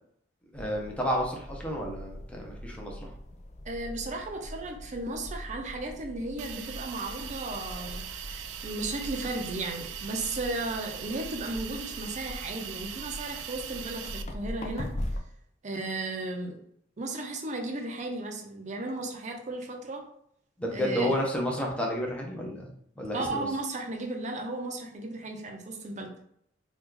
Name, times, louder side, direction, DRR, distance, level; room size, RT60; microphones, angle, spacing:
sound 1, 0.5-15.2, left 1 dB, 40° left, 0.4 m, -41 dB
voice 1, 0.5-3.1 20.6-23.5, equal, 5° left, -1 dB, 0.7 m, -31 dB
voice 2, 3.7-14.9 15.6-16.6 17.0-20.0 20.7-21.2 23.1-26.2, right 2 dB, 40° right, 2 dB, 0.6 m, -35 dB
Hiss, 6.4-14.2, right 9 dB, 90° right, 0.3 m, -40 dB
2.9 x 2.4 x 3.6 m, 0.68 s
head